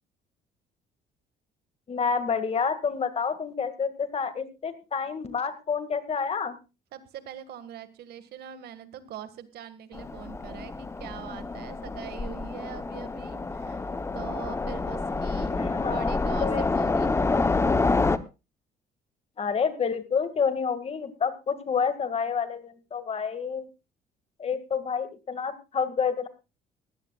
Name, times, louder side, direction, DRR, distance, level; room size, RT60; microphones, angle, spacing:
voice 1, 1.9-6.6 15.5-16.1 16.4-16.7 19.4-23.7 24.4-26.3, left 6 dB, 35° left, 11 dB, 2.0 m, -29 dB
voice 2, 6.9-13.9 14.1-15.5 15.9-17.2, right 10 dB, 70° right, 12 dB, 1.8 m, -43 dB
Train, 9.9-18.2, left 3 dB, 15° left, 0.8 m, -28 dB
19.0 x 15.5 x 2.4 m, 0.28 s
cardioid pair, 110°, 17 cm